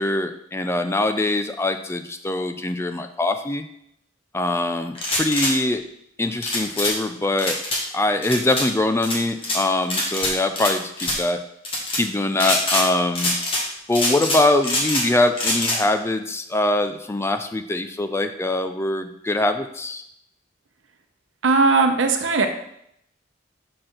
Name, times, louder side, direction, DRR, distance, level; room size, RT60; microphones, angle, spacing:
voice 1, 0.0-3.7 4.3-5.8 6.2-7.6 7.9-11.4 11.9-13.3 13.9-20.0, left 2 dB, 15° left, 8 dB, 0.4 m, -23 dB
sound 1, 4.9-5.5 6.4-6.9 7.4-7.8 8.2-8.7 9.0-9.6 9.9-10.7 11.0-11.2 11.6-12.0 12.4-12.9 13.1-13.6 13.9-15.1 15.3-15.8, left 1 dB, 30° left, 1.5 m, -24 dB
voice 2, 21.4-22.5, right 3 dB, 85° right, 6 dB, 0.8 m, -18 dB
5.9 x 4.4 x 5.0 m, 0.73 s
head